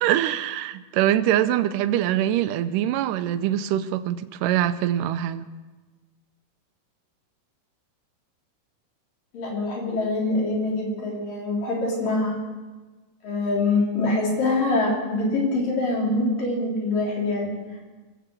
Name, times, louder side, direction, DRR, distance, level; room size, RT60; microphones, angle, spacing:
voice 1, 0.0-5.5, right 12 dB, 85° right, 2.2 m, -23 dB
voice 2, 9.3-12.4 13.2-17.6, left 2 dB, 80° left, 5.1 m, -24 dB
23.5 x 8.0 x 6.3 m
omnidirectional pair, 3.8 m